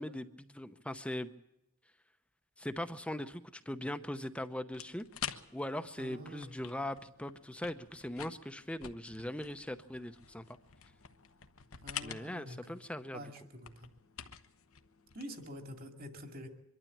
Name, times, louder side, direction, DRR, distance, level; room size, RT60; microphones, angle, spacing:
voice 1, 0.0-1.3 2.6-5.1 5.5-10.4 12.0-13.2, left 1 dB, 5° left, 9 dB, 0.7 m, -40 dB
sound 1, 4.7-15.9, left 9 dB, 85° left, 1.1 m, -48 dB
voice 2, 6.0-6.5 11.8-12.8 13.1-13.9 15.1-16.5, equal, 45° right, 5 dB, 2.4 m, -47 dB
24.0 x 12.5 x 8.6 m, 0.85 s
head